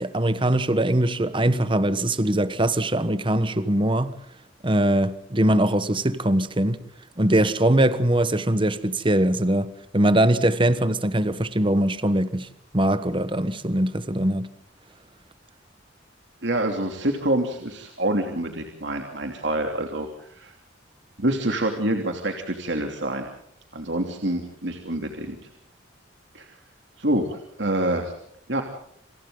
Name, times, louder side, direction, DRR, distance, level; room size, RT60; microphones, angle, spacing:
voice 1, 0.0-4.1 4.6-6.8 7.2-12.5 12.7-14.5, right 1 dB, 25° right, 1.3 m, -22 dB
voice 2, 16.4-20.5 21.2-23.3 23.7-25.4 26.3-26.5 27.0-28.1 28.5-28.6, right 1 dB, 65° right, 3.0 m, -26 dB
28.5 x 27.5 x 3.9 m
head